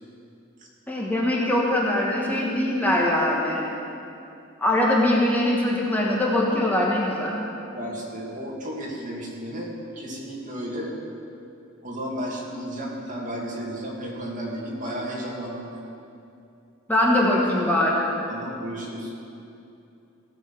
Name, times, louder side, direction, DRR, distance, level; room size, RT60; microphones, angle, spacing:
voice 1, 0.9-3.6 4.6-7.3 16.9-18.1, left 1 dB, 10° left, -4 dB, 1.4 m, -22 dB
voice 2, 7.7-9.7 10.0-10.9 11.8-15.7 18.3-19.1, equal, 40° right, -3 dB, 2.3 m, -33 dB
17.0 x 7.5 x 6.0 m, 2.7 s
head